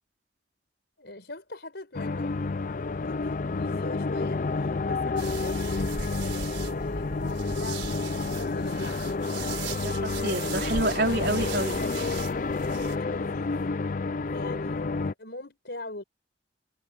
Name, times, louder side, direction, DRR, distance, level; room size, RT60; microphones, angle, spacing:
voice 1, 1.0-2.4 3.0-8.0 8.3-9.0 11.1-12.1 12.9-14.0 14.3-16.0, left 2 dB, 60° left, 5.0 m, -42 dB
sound 1, 1.9-15.1, left 3 dB, 45° left, 0.4 m, -30 dB
sound 2, 5.2-13.0, right 4 dB, 75° right, 4.4 m, -37 dB
voice 2, 9.8-11.8, right 2 dB, 55° right, 3.8 m, -28 dB
head